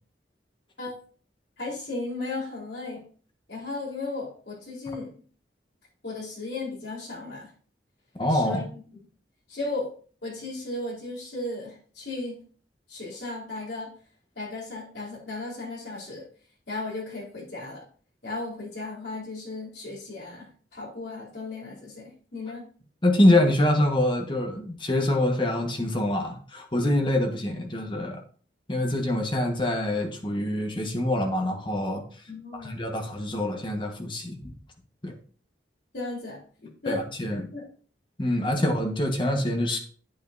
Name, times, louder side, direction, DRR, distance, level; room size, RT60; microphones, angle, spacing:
voice 1, 1.6-3.0 3.5-5.1 6.0-7.5 8.3-8.8 9.5-9.9 10.2-12.4 12.9-13.9 14.4-16.2 16.7-17.8 18.2-20.5 20.7-22.6 32.3-32.8 35.9-37.0 37.5-37.6, left 2 dB, 70° left, -3 dB, 4.1 m, -35 dB
voice 2, 8.2-8.7 23.0-28.2 28.7-32.0 32.5-34.5 35.0-35.1 36.9-37.5 38.2-39.8, left 1 dB, 30° left, 3 dB, 1.4 m, -25 dB
8.8 x 8.5 x 2.7 m, 0.42 s
head